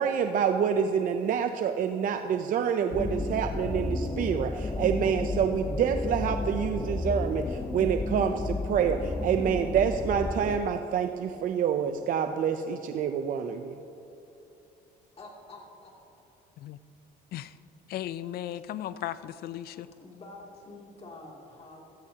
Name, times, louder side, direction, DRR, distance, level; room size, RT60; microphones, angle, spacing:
voice 1, 0.0-13.8, right 7 dB, 55° right, 0.6 m, -27 dB
sound 1, 2.9-10.6, left 2 dB, 15° left, 0.6 m, -32 dB
voice 2, 15.2-15.9 20.0-22.0, left 2 dB, 35° left, 2.7 m, -47 dB
voice 3, 17.9-19.9, left 12 dB, 65° left, 0.5 m, -36 dB
16.5 x 14.0 x 2.9 m
cardioid pair, 110°, 17 cm